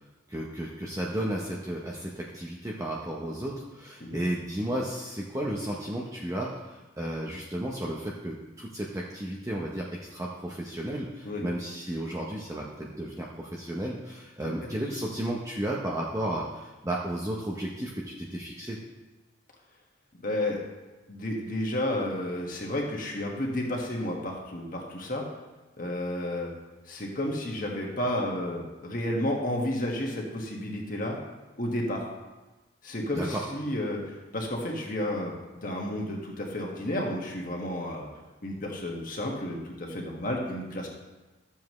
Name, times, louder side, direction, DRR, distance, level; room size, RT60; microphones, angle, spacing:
voice 1, 0.3-18.8 33.2-33.4, right 1 dB, 15° right, -3 dB, 0.7 m, -33 dB
voice 2, 20.2-20.6 21.1-25.2 25.8-26.5 26.8-31.2 31.6-32.1 32.8-38.1 38.4-40.9, left 1 dB, 45° left, -1 dB, 1.6 m, -31 dB
12.5 x 7.2 x 3.2 m, 1.2 s
head